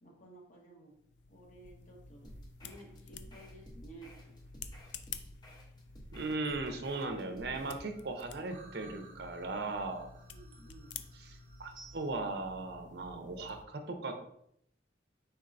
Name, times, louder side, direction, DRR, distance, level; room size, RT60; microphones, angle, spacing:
voice 1, 0.0-1.0 1.3-4.7 10.3-11.0, right 2 dB, 40° left, -1 dB, 1.1 m, -55 dB
sound 1, 0.9-13.7, left 6 dB, 75° left, 0.4 m, -51 dB
sound 2, 2.2-7.8, equal, 25° left, 0.8 m, -54 dB
voice 2, 6.1-10.1 11.2-14.2, right 3 dB, 60° right, 5 dB, 0.5 m, -38 dB
sound 3, 6.3-12.1, right 3 dB, 45° right, 1.0 m, -58 dB
4.5 x 4.3 x 2.5 m, 0.73 s
head